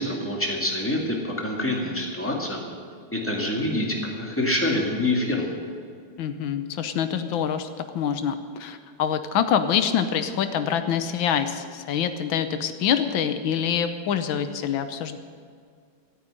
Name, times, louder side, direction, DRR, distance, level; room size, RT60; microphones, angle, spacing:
voice 1, 0.0-2.6 3.1-5.5, left 1 dB, 5° left, 0 dB, 2.2 m, -26 dB
voice 2, 6.2-7.7 7.9-15.2, left 8 dB, 85° left, 10 dB, 1.6 m, -25 dB
14.0 x 8.8 x 10.0 m, 2.1 s
omnidirectional pair, 2.1 m